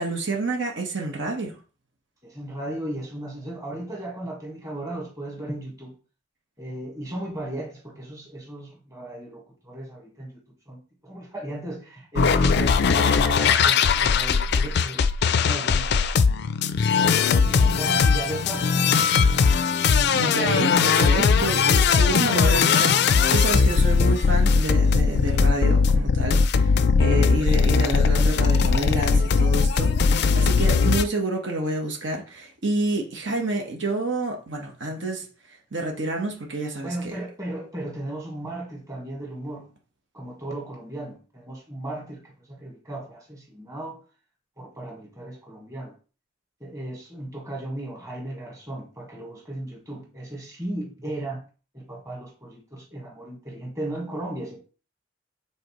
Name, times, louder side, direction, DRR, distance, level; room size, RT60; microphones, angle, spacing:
voice 1, 0.0-1.5 20.1-35.3 35.7-37.1, right 2 dB, 70° right, 1.3 m, -28 dB
voice 2, 2.2-6.0 6.6-16.1 16.9-19.0 36.8-39.7 40.1-44.0 44.6-45.9 46.6-51.4 51.7-54.6, right 1 dB, 20° right, 1.6 m, -35 dB
sound 1, 12.2-31.0, left 5 dB, 60° left, 0.4 m, -20 dB
7.8 x 3.9 x 3.1 m
head